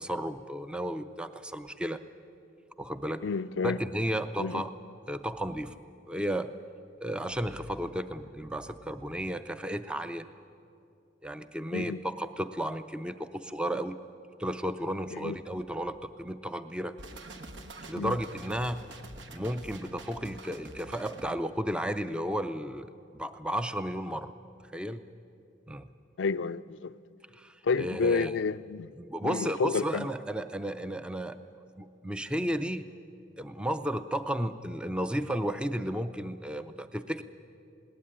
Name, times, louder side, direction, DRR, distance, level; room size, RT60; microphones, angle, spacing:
voice 1, 0.0-2.0 2.8-3.2 3.6-4.7 5.1-5.8 6.1-6.5 7.0-10.3 11.2-14.0 14.4-16.9 17.9-18.8 19.3-24.3 24.7-25.0 25.7-25.9 27.3-28.3 29.0-31.4 31.8-32.8 33.4-37.2, equal, 5° right, 0.4 m, -33 dB
voice 2, 3.2-3.8 4.4-4.6 11.7-12.0 15.1-15.3 17.9-18.2 26.2-26.9 27.6-28.9 29.2-30.1, left 4 dB, 85° left, 0.5 m, -30 dB
sound 1, 17.0-21.3, right 2 dB, 80° right, 1.4 m, -46 dB
20.0 x 18.0 x 9.9 m
head